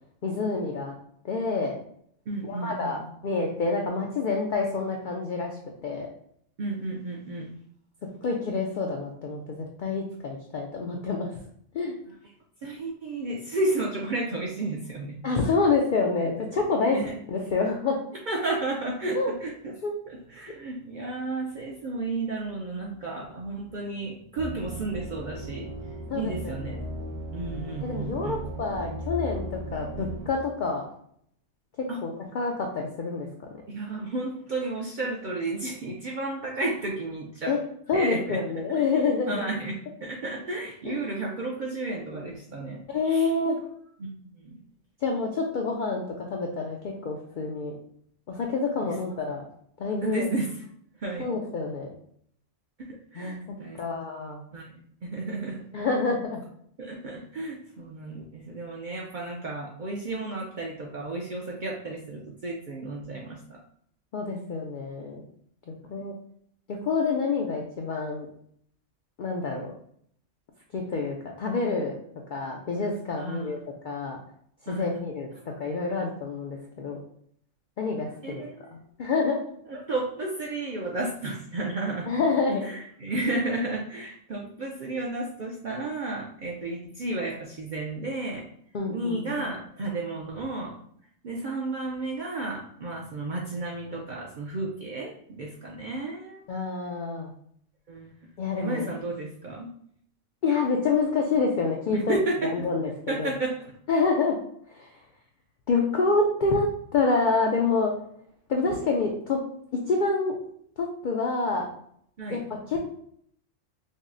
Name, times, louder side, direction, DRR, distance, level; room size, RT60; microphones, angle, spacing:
voice 1, 0.2-0.9 1.2-1.8 2.4-5.5 5.8-6.1 8.2-11.3 11.7-11.9 15.2-17.0 17.3-18.0 19.1-19.3 19.8-19.9 20.5-20.6 26.1-27.0 27.8-30.9 32.0-32.1 32.3-33.3 37.5-37.6 37.9-39.5 40.8-41.0 42.9-43.6 45.0-46.0 46.3-47.7 48.3-49.4 49.8-50.3 51.2-51.9 53.2-53.4 53.7-54.4 55.7-56.4 64.1-65.2 65.9-66.1 66.7-68.3 69.2-69.7 70.7-71.9 72.3-73.6 73.8-74.2 74.6-77.0 77.8-78.4 79.0-79.4 82.1-82.6 88.7-89.4 96.5-97.3 98.4-98.9 100.4-102.2 102.5-103.3 103.9-104.4 104.7-104.9 105.7-107.9 108.5-109.4 109.9-110.3 110.8-111.7 112.3-112.8, left 4 dB, 70° left, 1 dB, 0.4 m, -27 dB
voice 2, 2.3-3.0 6.6-7.5 12.6-15.2 16.9-17.2 18.3-19.8 20.1-25.7 26.1-26.8 27.3-28.4 31.9-32.0 33.7-37.5 37.9-38.4 38.7-38.8 39.3-43.3 44.0-44.6 48.8-48.9 50.0-50.5 51.0-51.3 52.8-54.0 54.5-54.7 55.0-55.7 56.8-63.6 66.0-66.1 73.2-73.7 74.7-75.0 78.2-78.8 79.7-82.1 82.6-88.5 88.9-90.7 91.2-96.5 97.9-98.1 98.6-99.7 101.9-102.7 103.1-103.5 112.2-112.4, right 2 dB, 60° right, -2 dB, 0.5 m, -32 dB
sound 1, 24.4-30.3, right 1 dB, 75° right, 1.0 m, -37 dB
5.2 x 2.0 x 2.5 m, 0.66 s
omnidirectional pair, 1.3 m